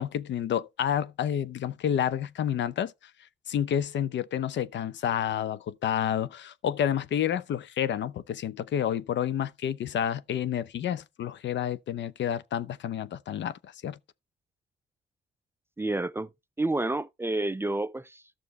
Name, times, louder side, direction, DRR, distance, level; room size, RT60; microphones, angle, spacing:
voice 1, 0.0-2.9 3.5-14.0, left 9 dB, 65° left, 0.8 m, -29 dB
voice 2, 15.8-16.3 16.6-18.2, right 2 dB, 10° right, 0.5 m, -29 dB
12.5 x 6.5 x 4.2 m
cardioid pair, 90°, 20 cm